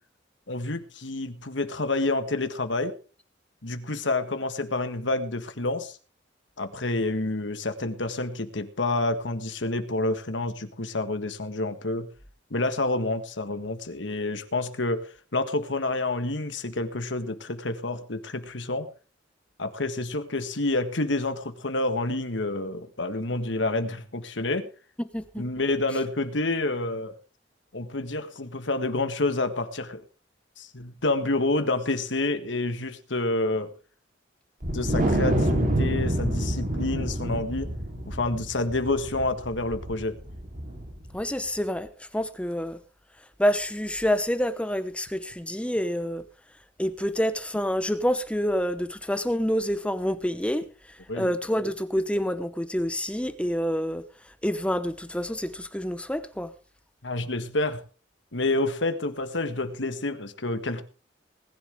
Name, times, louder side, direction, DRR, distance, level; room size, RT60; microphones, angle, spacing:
voice 1, 0.5-3.0 3.6-6.0 6.6-12.1 12.5-18.9 19.6-24.7 25.4-27.2 27.7-30.0 30.6-33.7 34.7-37.7 38.1-40.2 51.1-51.3 57.0-57.8 58.3-60.8, left 2 dB, 75° left, 9 dB, 1.7 m, -28 dB
voice 2, 25.0-25.4 41.1-42.8 43.4-46.2 46.8-56.5, equal, 5° left, 11 dB, 0.9 m, -28 dB
Wind, 34.6-41.1, right 1 dB, 45° right, 3.5 m, -27 dB
20.0 x 11.0 x 3.6 m, 0.36 s
head